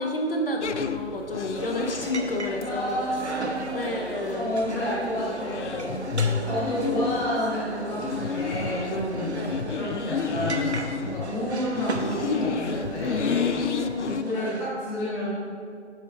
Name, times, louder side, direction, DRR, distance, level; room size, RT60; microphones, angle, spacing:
voice 1, 0.0-3.3 3.7-5.3 6.1-7.2 9.3-9.7 13.5-14.6, left 2 dB, 55° left, 2 dB, 0.8 m, -31 dB
sound 1, 0.6-14.2, left 5 dB, 85° left, 0.5 m, -31 dB
sound 2, 1.5-14.7, right 2 dB, 70° right, 0.9 m, -36 dB
voice 2, 2.6-3.9 4.3-6.0 6.4-9.4 9.7-10.7 11.0-13.6 14.2-15.3, left 1 dB, 10° left, -7 dB, 1.1 m, -30 dB
8.2 x 4.4 x 5.6 m, 2.2 s
figure-of-eight pair, 145°, 34 cm